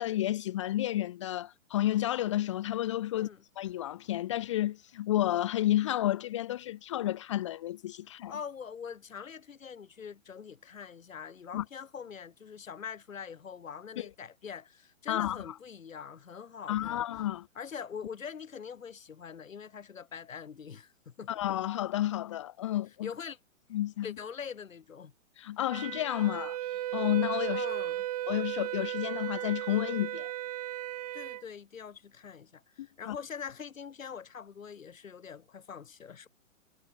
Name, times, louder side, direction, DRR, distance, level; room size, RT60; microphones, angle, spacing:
voice 1, 0.0-3.3 3.6-8.4 11.5-11.6 14.0-14.1 15.1-15.5 16.7-17.5 21.3-23.1 23.7-24.1 25.4-26.6 26.9-27.7 28.3-30.3 32.8-33.1, left 13 dB, 25° left, 1.2 m, -31 dB
voice 2, 3.1-3.4 8.3-17.0 17.6-21.3 23.0-23.4 24.0-25.1 27.5-28.1 31.1-36.3, left 7 dB, 80° left, 4.0 m, -43 dB
Wind instrument woodwind instrument, 25.7-31.4, right 14 dB, 30° right, 2.3 m, -35 dB
hypercardioid pair, 170°, 39 cm